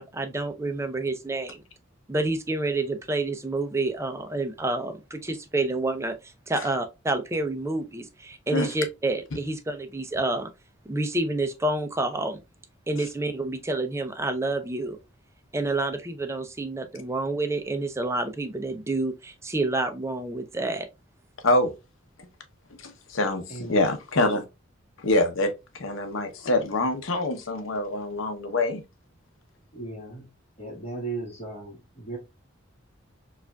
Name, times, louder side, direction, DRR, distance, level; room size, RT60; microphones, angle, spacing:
voice 1, 0.0-1.6 2.1-6.1 6.5-10.5 10.9-12.4 12.9-15.0 15.5-20.9, right 2 dB, 15° right, 0.5 m, -28 dB
voice 2, 21.4-21.8 22.2-22.3 22.8-24.4 25.0-28.8, left 2 dB, 75° left, 0.7 m, -25 dB
voice 3, 23.5-23.8 29.7-30.3 30.6-32.2, right 3 dB, 30° left, 1.5 m, -36 dB
4.7 x 2.4 x 2.2 m
head